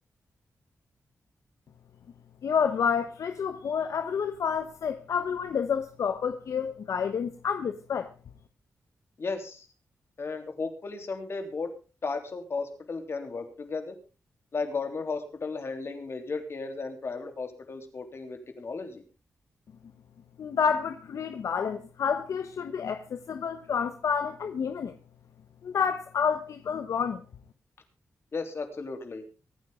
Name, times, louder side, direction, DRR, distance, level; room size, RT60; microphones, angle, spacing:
voice 1, 2.4-8.1 20.4-24.9 25.6-27.2, left 6 dB, 80° left, 1.0 m, -29 dB
voice 2, 9.2-9.7 10.2-11.7 12.0-14.0 14.5-19.0 28.3-29.2, left 4 dB, 55° left, 3.4 m, -34 dB
24.0 x 9.8 x 3.7 m
cardioid pair, 85°, 5 cm